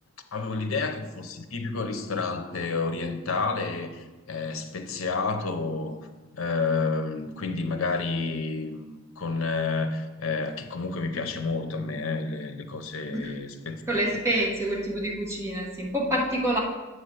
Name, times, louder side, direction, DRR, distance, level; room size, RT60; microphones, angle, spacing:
voice 1, 0.3-6.0 6.3-14.0, left 4 dB, 85° left, 7 dB, 0.7 m, -30 dB
voice 2, 13.9-16.6, right 1 dB, 15° right, -3 dB, 1.2 m, -27 dB
8.1 x 3.2 x 6.1 m, 1.2 s
head